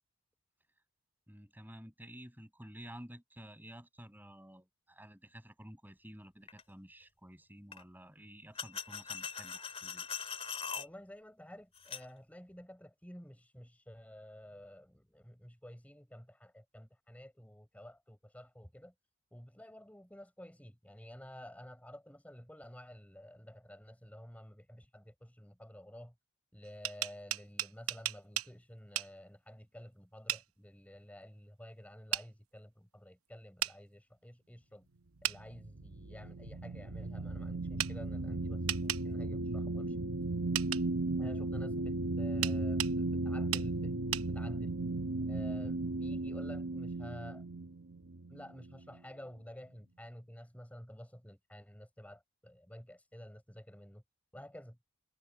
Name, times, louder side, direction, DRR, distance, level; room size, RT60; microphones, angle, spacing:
voice 1, 1.3-10.1, equal, 10° right, 7.4 m, -52 dB
sound 1, 6.5-6.6 7.7-7.8 8.6-10.9 11.8-12.1, left 7 dB, 30° left, 2.6 m, -41 dB
voice 2, 10.8-18.9 19.3-26.1 26.5-34.9 35.2-40.0 41.2-44.7 45.3-47.4 48.3-54.0 54.3-54.8, equal, 5° left, 4.7 m, -51 dB
sound 2, 26.6-28.5 29.0-29.1 30.3-30.4 32.1-32.3 33.6-33.8 35.2-35.4 37.8-37.9 38.7-39.0 40.5-40.8 42.4-42.9 43.5-43.7 44.1-44.3, right 12 dB, 90° right, 0.9 m, -35 dB
sound 3, 35.3-49.0, right 2 dB, 75° right, 1.2 m, -36 dB
head